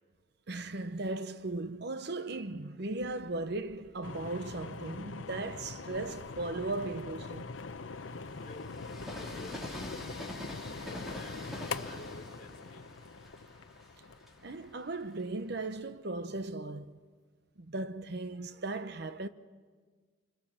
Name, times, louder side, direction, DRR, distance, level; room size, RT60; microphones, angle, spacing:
voice 1, 0.5-7.5 14.4-17.0 17.6-19.3, right 2 dB, 60° right, 0.9 m, -37 dB
Train, 2.9-4.6 5.2-15.8, left 1 dB, ahead, 3.0 m, -47 dB
sound 1, 4.0-15.1, left 4 dB, 80° left, 0.7 m, -43 dB
voice 2, 9.0-10.1 10.8-11.5 11.9-12.9, left 2 dB, 40° left, 3.0 m, -51 dB
27.5 x 25.5 x 7.3 m
head